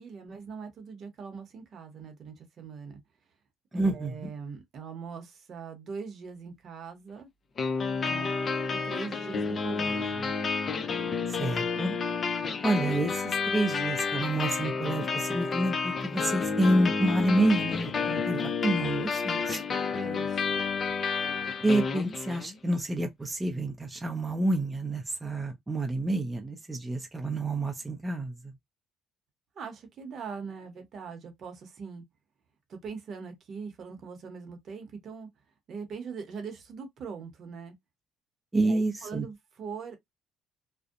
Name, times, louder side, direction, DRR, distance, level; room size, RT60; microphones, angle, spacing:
voice 1, 0.0-3.0 3.7-7.3 8.1-8.3 8.7-10.3 19.9-20.4 29.6-32.0 32.7-35.3 35.7-37.7 38.6-40.0, right 5 dB, 55° right, 0.8 m, -41 dB
voice 2, 3.7-4.3 11.3-12.0 12.6-19.6 21.6-28.3 38.5-39.2, right 1 dB, 15° right, 0.5 m, -28 dB
sound 1, 7.6-22.6, left 5 dB, 40° left, 0.5 m, -30 dB
2.6 x 2.1 x 2.4 m
cardioid pair, 95°, 0 cm